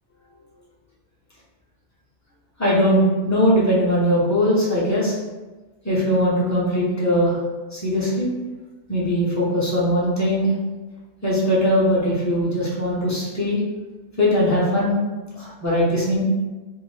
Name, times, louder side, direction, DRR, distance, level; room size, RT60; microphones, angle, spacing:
voice 1, 2.6-5.2 5.8-7.4 7.7-8.3 8.9-10.5 11.2-13.6 14.2-14.9 15.4-16.2, equal, 20° left, -7 dB, 0.6 m, -20 dB
2.6 x 2.5 x 3.1 m, 1.2 s
omnidirectional pair, 1.3 m